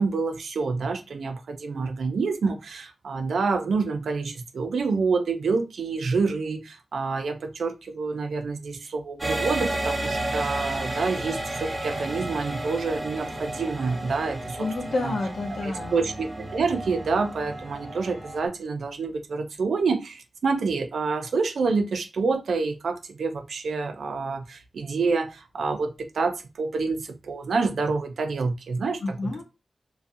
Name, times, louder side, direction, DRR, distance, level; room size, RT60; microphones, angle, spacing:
voice 1, 0.0-14.6 15.0-15.1 15.6-29.2, right 4 dB, 80° right, 0.5 m, -27 dB
sound 1, 9.2-18.5, right 1 dB, 20° right, 0.7 m, -32 dB
voice 2, 14.6-16.0 29.0-29.4, left 2 dB, 70° left, 0.7 m, -29 dB
2.4 x 2.3 x 2.6 m
wide cardioid pair, 150°, 0 cm